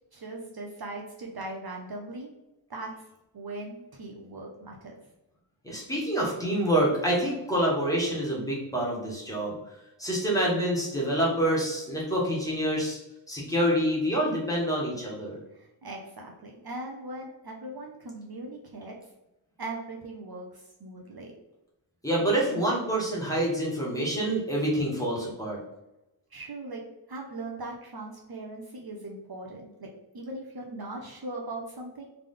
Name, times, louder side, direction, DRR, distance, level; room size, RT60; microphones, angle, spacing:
voice 1, 0.1-2.3 2.7-2.9 3.3-4.9 15.5-18.9 19.6-21.3 26.3-26.8 27.1-29.9 30.1-32.1, right 2 dB, 50° right, 0 dB, 0.8 m, -39 dB
voice 2, 5.6-9.5 10.0-13.0 13.3-15.4 22.0-25.6, right 1 dB, 5° left, -4 dB, 1.6 m, -27 dB
3.6 x 3.4 x 3.7 m, 0.91 s
wide cardioid pair, 115°, 47 cm